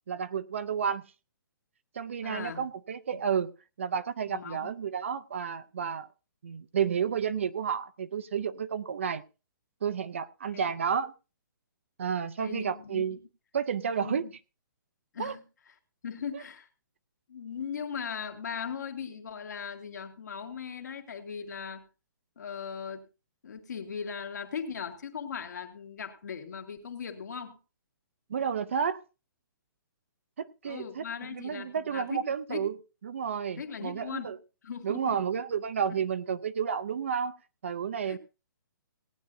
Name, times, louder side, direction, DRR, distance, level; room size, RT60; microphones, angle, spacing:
voice 1, 0.1-1.0 1.9-3.5 3.8-6.1 6.4-9.2 9.8-11.1 12.0-13.2 13.5-14.2 15.2-15.3 16.3-16.4 28.3-29.0 30.4-32.8 33.0-34.4 34.8-37.3 37.6-38.2, right 7 dB, 35° right, 13 dB, 0.5 m, -31 dB
voice 2, 2.2-2.7 3.1-3.2 4.3-4.7 10.5-10.6 12.4-13.2 14.0-14.3 15.1-15.4 16.0-16.7 17.3-21.9 22.4-23.1 23.4-27.6 30.7-32.2 32.5-32.7 33.6-34.4 34.6-35.2 35.9-36.0 38.0-38.2, left 6 dB, 55° left, 4 dB, 2.2 m, -38 dB
18.5 x 10.0 x 2.6 m, 0.31 s
hypercardioid pair, 180°, 11 cm